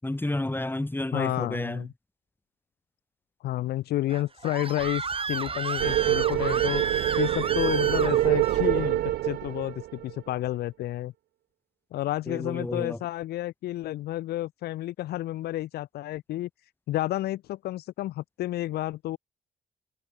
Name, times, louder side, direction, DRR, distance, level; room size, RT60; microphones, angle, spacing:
voice 1, 0.0-1.9 12.3-13.0, left 1 dB, 10° left, 6.6 m, -30 dB
voice 2, 1.1-1.9 3.4-11.1 11.9-16.5 16.9-19.2, left 15 dB, 80° left, 1.3 m, -31 dB
Screaming, 4.1-8.6, right 4 dB, 35° right, 4.5 m, -32 dB
sound 1, 5.8-10.2, right 15 dB, 85° right, 1.7 m, -25 dB
supercardioid pair, 70°, 16 cm